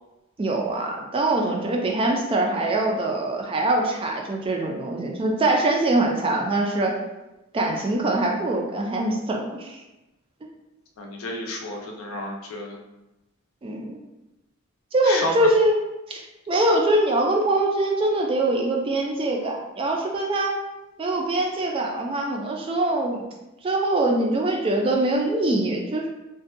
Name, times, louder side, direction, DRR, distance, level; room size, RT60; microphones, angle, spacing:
voice 1, 0.4-7.0 7.5-9.8 13.6-14.0 14.9-16.2 16.5-20.5 21.0-23.2 23.6-26.1, right 2 dB, 25° right, 1 dB, 0.3 m, -23 dB
voice 2, 11.0-12.8 15.0-15.3, left 1 dB, 75° left, 1 dB, 0.5 m, -31 dB
2.6 x 2.2 x 2.4 m, 0.99 s
head